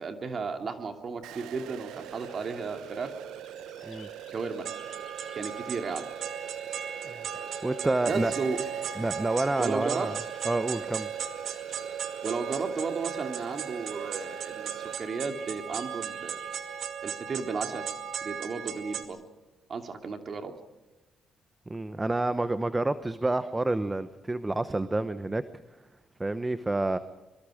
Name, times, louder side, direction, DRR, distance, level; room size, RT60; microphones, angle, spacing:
voice 1, 0.0-3.1 4.3-4.7 5.3-6.0 8.0-8.6 9.6-10.1 12.2-16.4 17.0-17.8 18.2-19.2 19.7-20.5, right 4 dB, 45° right, 5 dB, 2.7 m, -34 dB
sound 1, 1.2-14.9, right 12 dB, 90° right, 0.6 m, -43 dB
sound 2, 1.9-16.9, left 6 dB, 55° left, 4.1 m, -56 dB
sound 3, 4.6-19.0, right 8 dB, 65° right, 2.1 m, -37 dB
voice 2, 7.6-8.3 9.0-10.2 10.4-11.1 21.7-25.4 26.2-27.0, right 2 dB, 15° right, 12 dB, 0.9 m, -28 dB
25.5 x 24.0 x 5.1 m, 1.1 s
cardioid pair, 90°, 0 cm